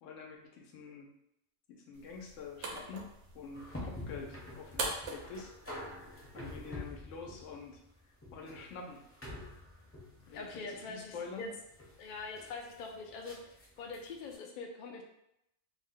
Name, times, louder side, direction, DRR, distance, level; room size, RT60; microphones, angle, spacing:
voice 1, 0.0-1.1 1.7-5.5 6.3-7.8 8.3-9.0 10.3-11.5, left 5 dB, 80° left, 0 dB, 1.0 m, -47 dB
sound 1, 1.9-7.0, right 3 dB, 70° right, 0.9 m, -44 dB
sound 2, 3.5-14.3, left 1 dB, 15° left, 0.5 m, -47 dB
voice 2, 10.3-11.5 12.0-13.4 13.8-15.0, left 4 dB, 60° left, 2 dB, 0.5 m, -43 dB
2.6 x 2.1 x 3.6 m, 0.80 s
omnidirectional pair, 1.3 m